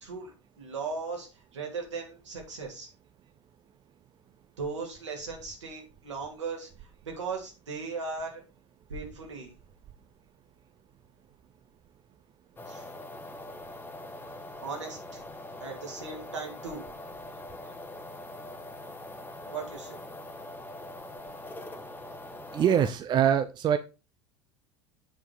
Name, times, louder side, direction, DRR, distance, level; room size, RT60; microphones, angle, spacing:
voice 1, 0.0-1.3 1.5-2.9 4.6-6.7 7.0-8.4 8.9-9.5 12.7-12.8 14.6-15.2 15.6-16.8 19.5-20.0, right 4 dB, 75° right, 2.7 m, -37 dB
sound 1, 12.6-22.9, left 1 dB, 15° left, 1.3 m, -43 dB
voice 2, 22.5-23.8, right 9 dB, 30° right, 0.6 m, -23 dB
8.0 x 4.8 x 4.9 m
figure-of-eight pair, 70°, 15 cm